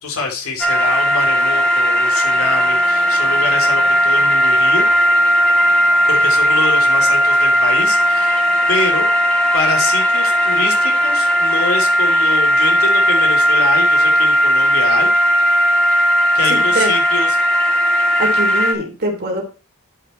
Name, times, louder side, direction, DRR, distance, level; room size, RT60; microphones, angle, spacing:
voice 1, 0.0-4.8 6.1-8.4 8.7-9.1 9.5-15.1 16.3-17.3, left 3 dB, 70° left, 1 dB, 3.1 m, -25 dB
sound 1, 0.6-18.7, equal, 5° left, 1.8 m, -15 dB
voice 2, 16.5-16.9 17.9-19.4, right 1 dB, 45° right, 0 dB, 2.9 m, -23 dB
11.0 x 5.9 x 4.4 m, 0.32 s
head